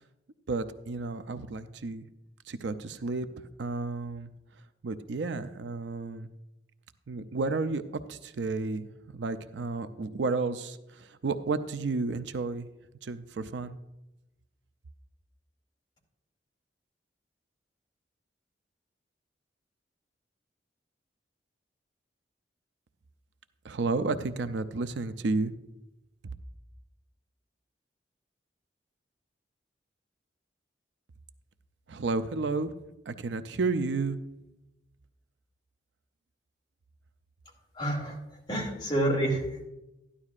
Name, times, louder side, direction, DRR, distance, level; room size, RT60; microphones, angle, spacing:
voice 1, 0.5-2.0 2.5-3.3 3.6-4.3 4.8-6.3 7.1-7.8 8.1-10.8 11.2-12.7 13.0-13.8 23.6-25.5 31.9-32.7 33.1-34.2, right 3 dB, 80° right, 11 dB, 0.5 m, -31 dB
voice 2, 37.8-38.2 38.5-39.7, right 1 dB, 25° left, -2 dB, 2.3 m, -28 dB
13.0 x 11.0 x 2.4 m, 0.93 s
head